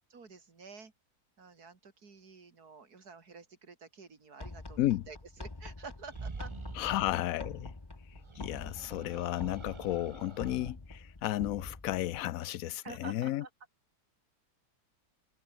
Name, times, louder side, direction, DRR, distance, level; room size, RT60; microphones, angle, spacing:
voice 1, 0.1-0.9 1.4-6.5 6.8-7.0 12.8-13.5, right 5 dB, 60° right, 3.4 m, -50 dB
sound 1, 4.4-12.2, left 2 dB, 15° left, 1.3 m, -46 dB
sound 2, 6.0-7.3 8.1-10.7, right 3 dB, 20° right, 0.8 m, -46 dB
voice 2, 6.8-7.7 8.4-13.4, left 14 dB, 70° left, 0.8 m, -33 dB
omnidirectional pair, 1.9 m